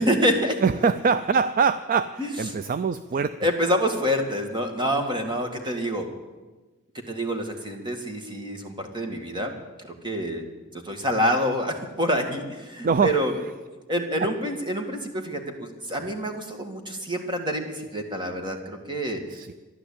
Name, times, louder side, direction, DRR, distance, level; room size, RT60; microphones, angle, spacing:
voice 1, 0.0-0.6 2.2-2.3 3.4-6.1 7.1-9.6 10.0-10.4 10.7-13.3 13.9-19.2, equal, 20° right, 4 dB, 1.8 m, -27 dB
voice 2, 0.6-3.3 12.8-13.2 14.2-14.3 19.3-19.5, right 5 dB, 40° right, 13 dB, 0.4 m, -23 dB
13.0 x 11.5 x 8.5 m, 1.2 s
head